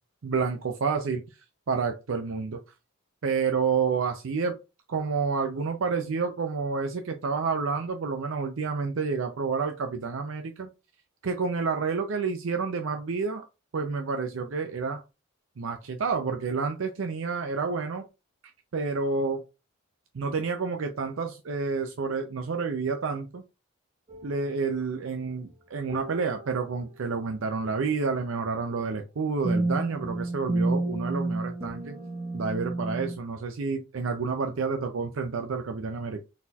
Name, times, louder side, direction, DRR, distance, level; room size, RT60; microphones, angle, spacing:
voice 1, 0.2-1.2 1.7-2.6 3.2-4.6 4.9-10.7 11.2-13.5 13.7-15.0 15.6-18.1 18.7-19.4 20.1-23.4 24.2-32.0 32.3-36.2, right 5 dB, 70° right, 5 dB, 0.5 m, -29 dB
sound 1, 24.1-24.3 25.9-27.0 29.4-33.2, right 2 dB, 25° right, 0.9 m, -30 dB
4.1 x 4.1 x 2.3 m, 0.27 s
head